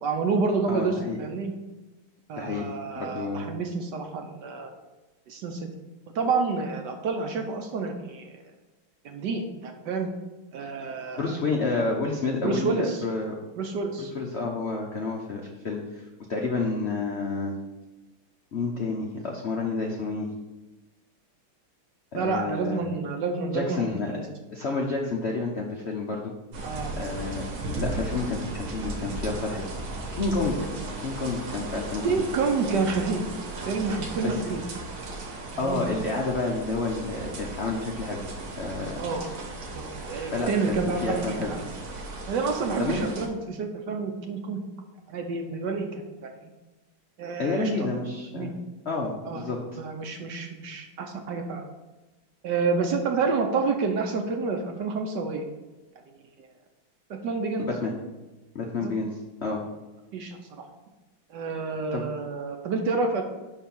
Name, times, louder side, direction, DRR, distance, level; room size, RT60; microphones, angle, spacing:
voice 1, 0.0-1.5 2.3-4.7 5.3-5.7 6.1-8.4 9.0-10.1 10.5-11.3 12.3-13.0 13.6-14.1 22.1-24.2 26.6-26.9 32.0-33.2 33.7-34.6 35.5-35.8 39.0-39.2 39.7-41.6 42.3-44.6 45.1-45.9 46.2-46.5 47.2-47.9 48.3-48.5 49.2-49.4 49.8-51.7 52.4-55.4 56.4-56.5 57.1-57.7 58.8-58.9 60.1-60.4 61.3-63.2, right 4 dB, 65° right, 4 dB, 1.2 m, -29 dB
voice 2, 0.7-1.2 2.3-2.6 3.0-3.5 11.2-13.4 14.0-17.5 18.5-20.3 22.1-22.8 23.5-24.1 24.5-26.3 27.0-27.5 27.8-30.6 31.0-32.2 34.2-34.3 35.6-38.2 38.6-39.0 40.1-40.8 41.0-41.5 42.8-43.1 47.4-48.5 48.9-49.6 57.6-57.9 58.5-59.6 61.9-62.0, left 3 dB, 65° left, -1 dB, 0.6 m, -30 dB
sound 1, 26.5-43.3, right 2 dB, 85° right, 2.1 m, -36 dB
5.7 x 4.6 x 6.0 m, 1.1 s
omnidirectional pair, 2.3 m